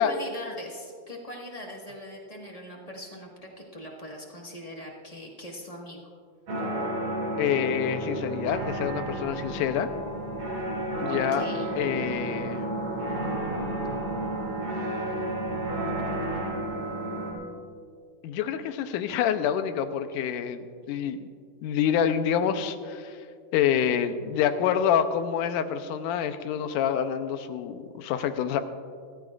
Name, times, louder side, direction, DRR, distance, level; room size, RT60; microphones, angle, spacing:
voice 1, 0.0-6.1 11.0-11.7, left 1 dB, 25° left, -2 dB, 0.7 m, -41 dB
sound 1, 6.5-17.3, right 1 dB, 65° right, 6.1 m, -31 dB
voice 2, 7.4-9.9 11.0-11.5 11.8-12.7 18.2-21.2 21.6-23.2 23.5-28.6, left 9 dB, 90° left, 9 dB, 2.2 m, -27 dB
27.0 x 14.0 x 2.5 m, 2.2 s
omnidirectional pair, 3.6 m